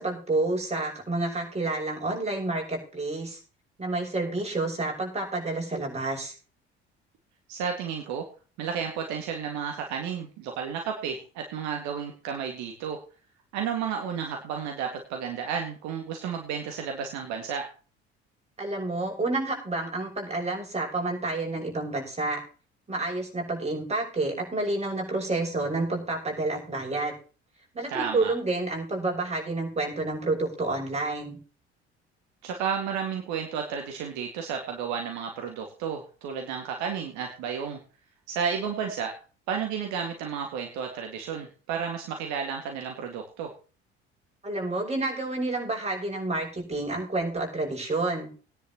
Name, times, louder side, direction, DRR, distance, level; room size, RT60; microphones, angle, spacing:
voice 1, 0.0-3.4 3.8-6.3 18.6-22.4 22.9-27.2 27.7-31.4 44.4-48.3, right 2 dB, 20° right, 0 dB, 6.3 m, -29 dB
voice 2, 7.5-8.3 8.6-13.0 13.5-17.7 27.9-28.3 32.4-37.8 38.3-39.1 39.5-43.5, right 7 dB, 55° right, 3 dB, 2.1 m, -32 dB
18.5 x 10.5 x 3.0 m, 0.37 s
figure-of-eight pair, 55°, 34 cm